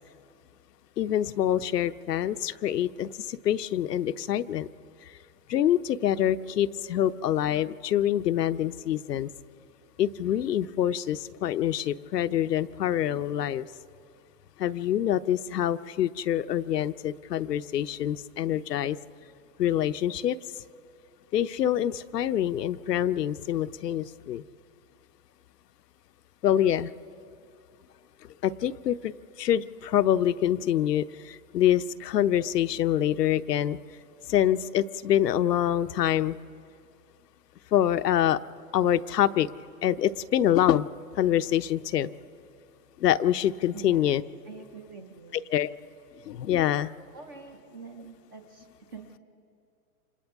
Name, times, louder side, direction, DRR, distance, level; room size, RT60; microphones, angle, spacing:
voice 1, 1.0-4.7 5.5-9.3 10.0-13.7 14.6-19.0 19.6-20.4 21.3-24.4 26.4-26.9 28.4-29.1 29.4-33.8 34.3-36.4 37.7-38.4 38.7-39.5 39.8-40.9 41.2-42.1 43.0-44.2 45.5-45.7 46.3-46.9, left 11 dB, 80° left, 12 dB, 0.8 m, -25 dB
voice 2, 43.7-44.2 44.4-45.4 47.1-49.2, right 5 dB, 15° right, 5 dB, 0.5 m, -46 dB
28.5 x 26.0 x 3.6 m, 2.5 s
hypercardioid pair, 155°, 48 cm